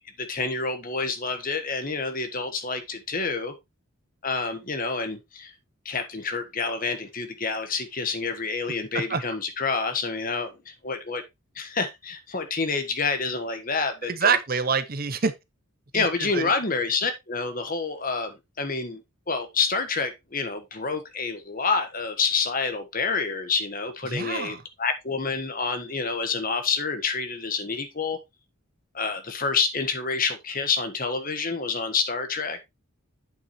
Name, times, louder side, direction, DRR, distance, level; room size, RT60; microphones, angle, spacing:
voice 1, 0.2-3.5 4.2-5.5 5.8-11.2 11.5-14.4 15.9-19.0 19.3-28.2 28.9-32.6, left 4 dB, 40° left, 1.4 m, -28 dB
voice 2, 14.1-15.3 15.9-16.5 24.0-24.6, right 5 dB, 40° right, 0.8 m, -26 dB
8.5 x 7.1 x 3.1 m
head